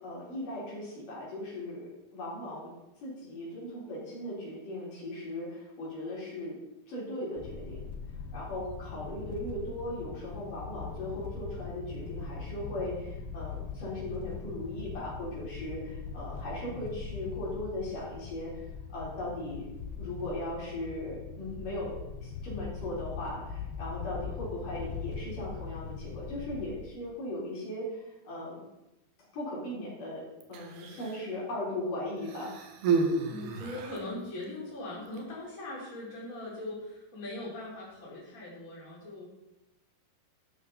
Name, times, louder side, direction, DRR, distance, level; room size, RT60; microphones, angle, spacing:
voice 1, 0.0-2.7 3.0-6.6 6.9-7.8 8.3-18.5 18.9-19.7 20.0-28.6 29.3-32.5, left 1 dB, 55° left, -6 dB, 5.7 m, -38 dB
sound 1, 7.4-26.8, left 5 dB, 75° left, 2.8 m, -41 dB
Human voice, 30.4-31.3 32.2-34.2 35.1-35.2, right 4 dB, 75° right, 3.2 m, -31 dB
voice 2, 33.2-39.2, left 2 dB, 20° left, -6 dB, 4.2 m, -40 dB
12.5 x 11.0 x 4.3 m, 0.93 s
omnidirectional pair, 4.6 m